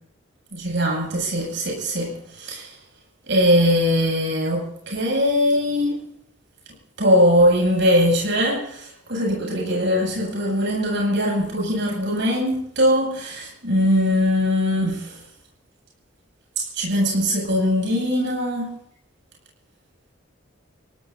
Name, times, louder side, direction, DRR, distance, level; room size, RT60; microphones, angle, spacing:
voice 1, 0.5-2.7 3.3-6.0 7.0-15.1 16.8-18.7, equal, 55° right, -2 dB, 7.9 m, -21 dB
27.5 x 17.5 x 2.8 m, 0.69 s
head